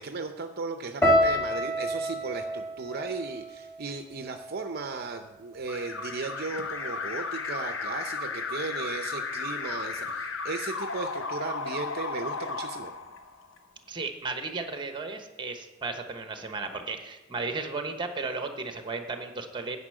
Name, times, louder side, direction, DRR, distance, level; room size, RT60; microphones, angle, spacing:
voice 1, 0.0-12.9, right 4 dB, 55° right, 6 dB, 0.6 m, -36 dB
sound 1, 1.0-5.2 5.5-6.3 6.8-7.1, equal, 15° left, 2.0 m, -29 dB
Alarm, 5.7-13.6, left 4 dB, 85° left, 0.8 m, -34 dB
voice 2, 13.9-19.8, right 3 dB, 25° right, 6 dB, 1.0 m, -34 dB
9.8 x 5.5 x 7.6 m, 1.1 s
head